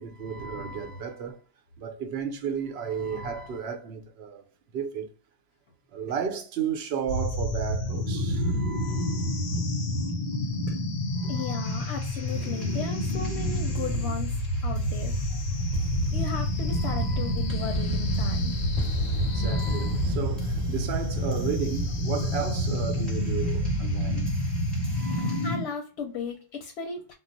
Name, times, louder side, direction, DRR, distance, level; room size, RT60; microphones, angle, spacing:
voice 1, 0.0-1.4 1.8-4.4 4.7-5.1 5.9-9.4 11.2-11.7 16.7-17.6 19.2-24.3 24.9-25.5, right 7 dB, 70° right, 0.8 m, -34 dB
sound 1, 7.1-25.6, left 1 dB, 55° left, 0.6 m, -28 dB
voice 2, 11.3-15.1 16.1-18.5 25.2-27.1, left 5 dB, 90° left, 0.9 m, -36 dB
sound 2, 11.6-25.5, equal, ahead, 1.1 m, -36 dB
2.3 x 2.0 x 3.8 m
omnidirectional pair, 1.1 m